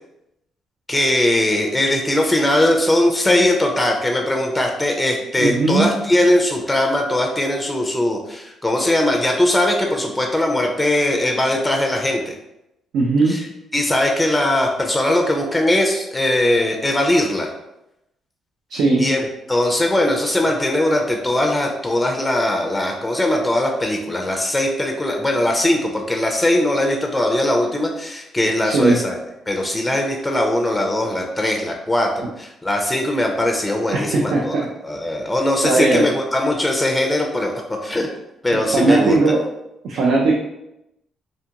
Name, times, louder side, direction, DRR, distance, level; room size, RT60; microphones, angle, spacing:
voice 1, 0.9-12.3 13.3-13.5 13.7-17.5 19.0-19.2 19.5-29.2 29.5-38.1 38.4-39.2, left 1 dB, 10° left, 1 dB, 0.4 m, -20 dB
voice 2, 5.4-5.9 12.9-13.4 18.7-19.1 28.6-29.0 33.9-34.6 35.6-36.1 38.5-39.4 39.8-40.3, right 3 dB, 80° right, -3 dB, 0.4 m, -18 dB
2.5 x 2.4 x 2.8 m, 0.89 s
cardioid pair, 90°, 0 cm